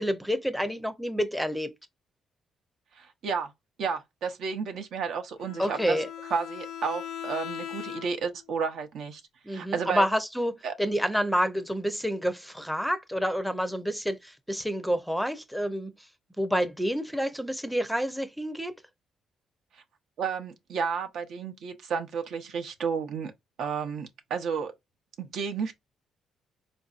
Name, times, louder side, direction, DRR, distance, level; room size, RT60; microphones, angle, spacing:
voice 1, 0.0-1.7 5.6-6.1 9.5-15.9 16.4-18.7, equal, ahead, 0.5 m, -28 dB
voice 2, 3.0-3.5 3.8-6.0 6.3-9.2 9.5-10.1 10.6-10.7 20.2-23.3 23.6-24.7 25.2-25.7, right 6 dB, 75° right, 0.7 m, -32 dB
Bowed string instrument, 5.4-8.4, left 9 dB, 80° left, 0.4 m, -39 dB
4.1 x 2.6 x 2.4 m
cardioid pair, 90°, 0 cm